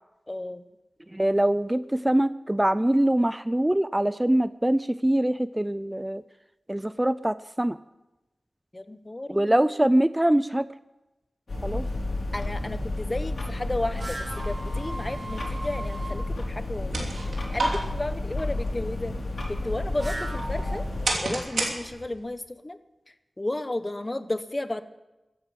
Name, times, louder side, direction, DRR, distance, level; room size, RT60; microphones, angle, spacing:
voice 1, 0.3-0.6 8.7-9.5 12.3-14.2 14.4-17.1 17.5-19.1 19.6-20.8 21.2-22.8 23.4-24.8, left 1 dB, 30° left, 11 dB, 1.1 m, -33 dB
voice 2, 1.1-6.2 6.7-7.8 9.3-10.7 11.6-11.8, right 1 dB, 15° right, 15 dB, 0.5 m, -23 dB
sound 1, 11.5-21.1, left 2 dB, 65° left, 4.2 m, -31 dB
sound 2, 13.9-16.2 19.7-21.4, right 2 dB, 45° right, 2.0 m, -39 dB
sound 3, 16.7-22.3, right 2 dB, 90° right, 2.9 m, -33 dB
14.5 x 10.5 x 7.7 m, 1.0 s
cardioid pair, 45°, 0 cm